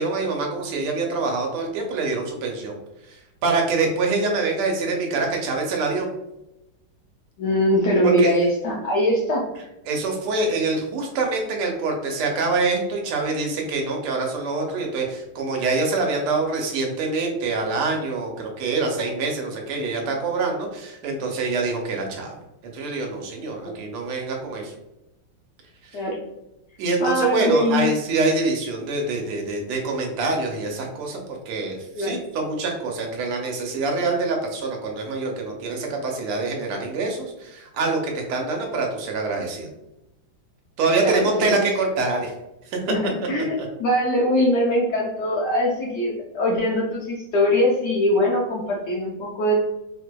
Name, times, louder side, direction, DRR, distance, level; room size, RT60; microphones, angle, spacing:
voice 1, 0.0-2.8 3.1-6.1 8.0-8.3 9.9-22.3 22.7-24.7 25.9-26.0 26.8-39.7 40.8-42.3 42.7-42.9 43.6-43.7, right 3 dB, 90° right, 1 dB, 1.7 m, -25 dB
voice 2, 7.4-9.4 23.6-23.7 25.9-26.2 27.0-27.9 32.0-32.2 41.0-41.6 42.9-49.5, left 1 dB, 70° left, -3 dB, 1.0 m, -22 dB
4.6 x 2.6 x 2.2 m, 0.92 s
omnidirectional pair, 2.3 m